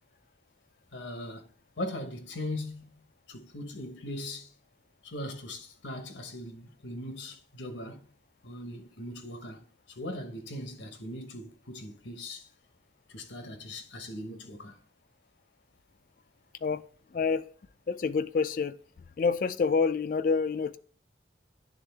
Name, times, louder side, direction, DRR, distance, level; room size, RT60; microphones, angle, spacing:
voice 1, 0.9-1.5 1.8-4.5 5.0-8.0 8.4-12.5 13.1-14.8, left 1 dB, 85° left, 1.0 m, -40 dB
voice 2, 17.1-17.5 17.9-18.8 19.2-20.8, left 5 dB, 45° left, 0.3 m, -27 dB
10.5 x 3.6 x 3.4 m
head